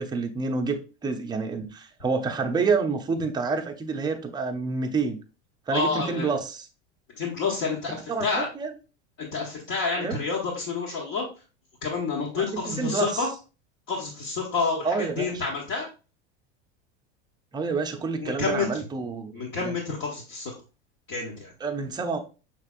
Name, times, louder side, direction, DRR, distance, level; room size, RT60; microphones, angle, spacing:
voice 1, 0.0-5.2 5.7-6.6 8.1-8.3 8.6-8.7 10.0-10.2 12.4-13.1 14.8-15.3 17.5-19.7 21.6-22.2, right 4 dB, 10° right, 4 dB, 0.5 m, -28 dB
voice 2, 5.7-6.3 7.1-8.5 9.2-11.2 11.8-13.3 13.9-15.9 18.2-18.7 19.3-20.5 21.1-21.5, left 4 dB, 50° left, -3 dB, 1.4 m, -29 dB
5.8 x 3.3 x 2.4 m, 0.33 s
supercardioid pair, 125°, 35 cm